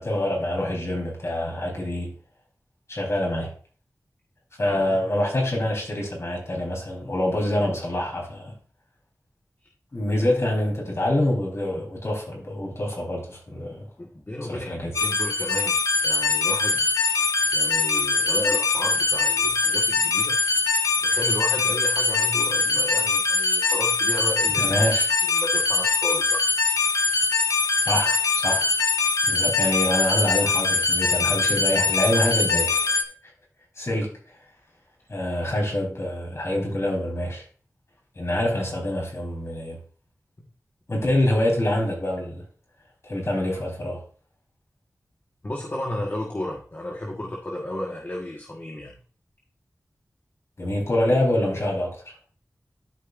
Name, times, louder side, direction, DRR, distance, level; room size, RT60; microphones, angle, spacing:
voice 1, 0.0-2.2 2.9-3.5 4.6-8.5 9.9-13.9 14.4-14.9 24.6-25.1 27.8-28.7 29.3-33.0 33.8-34.1 35.1-37.4 38.2-39.8 40.9-42.4 43.0-44.0 50.6-52.1, left 1 dB, 50° left, 4.0 m, -26 dB
voice 2, 4.6-5.0 13.7-15.8 16.0-16.8 17.5-20.3 21.0-24.9 25.3-26.4 45.4-49.0, left 1 dB, 35° left, 1.4 m, -33 dB
sound 1, 14.9-33.0, left 4 dB, 80° left, 1.1 m, -22 dB
12.5 x 5.4 x 2.5 m
wide cardioid pair, 65°, 6 cm